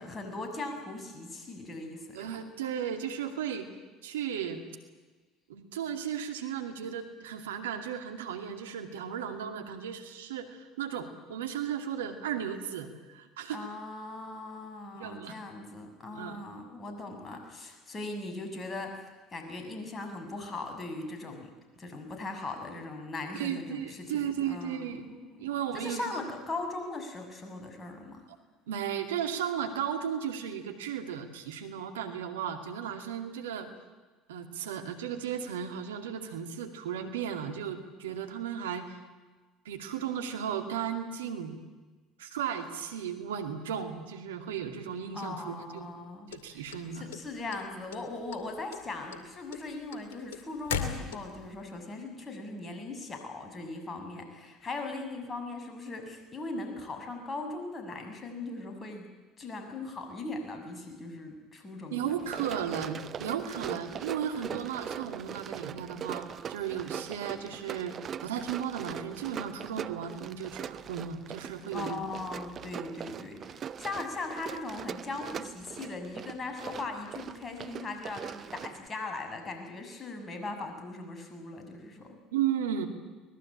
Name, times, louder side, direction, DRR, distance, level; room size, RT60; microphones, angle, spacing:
voice 1, 0.0-2.4 13.5-19.0 19.3-21.5 21.8-28.2 45.1-59.1 59.4-62.5 63.7-63.8 64.5-64.7 71.7-82.2, left 2 dB, 30° left, 5 dB, 7.0 m, -39 dB
voice 2, 2.1-3.7 4.0-4.6 5.5-13.7 14.9-15.4 16.1-16.4 23.3-26.1 28.7-33.7 34.3-39.0 39.6-41.6 42.2-45.9 46.3-47.1 61.9-72.0 82.3-82.9, right 8 dB, 80° right, 7 dB, 2.4 m, -35 dB
sound 1, 46.3-47.6 47.9-48.4 48.7-51.5, left 7 dB, 80° left, 2.4 m, -36 dB
Run, 62.2-78.9, right 8 dB, 45° right, 0.8 m, -41 dB
24.0 x 20.5 x 8.8 m, 1.3 s
hypercardioid pair, 65°, 0 cm